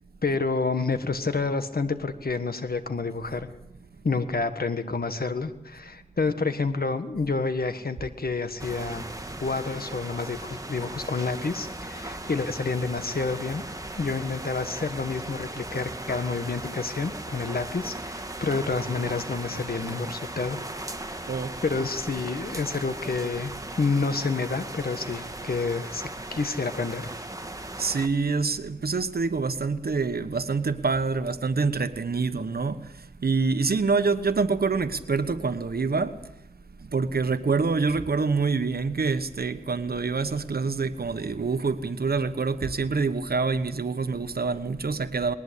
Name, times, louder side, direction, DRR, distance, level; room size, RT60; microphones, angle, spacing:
voice 1, 0.2-3.5 4.0-9.0 9.4-13.6 14.0-20.6 21.0-21.2 21.6-27.1, left 4 dB, 80° left, 1.7 m, -29 dB
sound 1, 8.6-28.1, right 1 dB, 20° right, 1.7 m, -38 dB
voice 2, 27.8-32.9 33.2-36.2 36.8-45.3, right 4 dB, 90° right, 1.2 m, -26 dB
20.0 x 19.5 x 8.4 m
wide cardioid pair, 70°, 15 cm